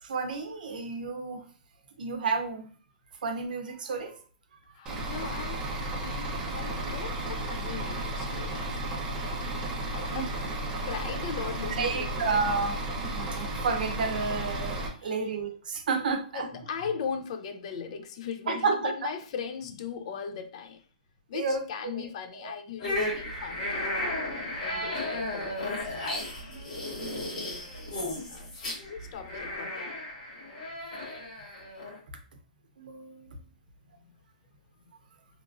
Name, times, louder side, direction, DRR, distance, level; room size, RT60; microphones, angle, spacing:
voice 1, 0.0-1.5 2.0-2.7 3.2-4.1 10.1-10.3 11.7-16.5 18.5-19.1 21.3-22.0 22.3-22.5 24.5-24.9 26.4-26.6 27.0-27.5 32.8-33.4, right 4 dB, 80° right, 0.6 m, -31 dB
voice 2, 4.7-8.8 9.9-10.3 10.8-12.4 15.0-15.2 16.3-20.8 21.3-24.1 24.6-25.7 26.8-26.9 28.0-30.0 33.9-34.1, left 6 dB, 45° left, 0.3 m, -39 dB
Bus / Idling, 4.9-14.9, right 1 dB, 15° right, 0.5 m, -33 dB
sound 1, 22.8-32.0, left 1 dB, 60° left, 1.3 m, -34 dB
2.8 x 2.4 x 2.4 m
hypercardioid pair, 165°, 5 cm